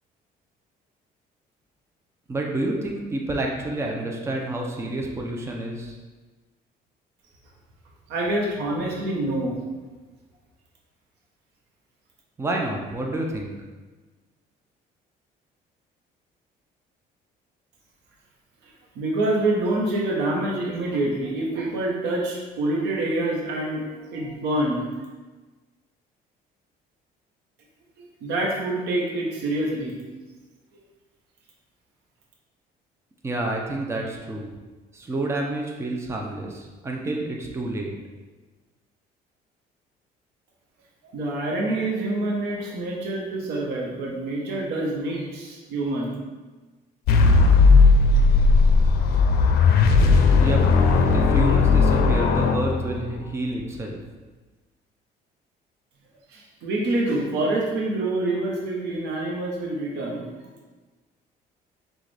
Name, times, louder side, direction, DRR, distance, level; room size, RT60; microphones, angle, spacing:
voice 1, 2.3-6.0 12.4-13.5 33.2-34.5 34.9-37.9 50.4-50.6 51.1-54.0, right 2 dB, 15° right, 0 dB, 0.6 m, -29 dB
voice 2, 8.1-9.6 18.9-24.9 28.2-29.9 41.1-46.1 56.3-60.5, right 2 dB, 85° right, -2 dB, 1.1 m, -26 dB
sound 1, 47.1-53.2, left 4 dB, 65° left, 0.5 m, -17 dB
6.2 x 2.5 x 3.3 m, 1.3 s
cardioid pair, 110°, 17 cm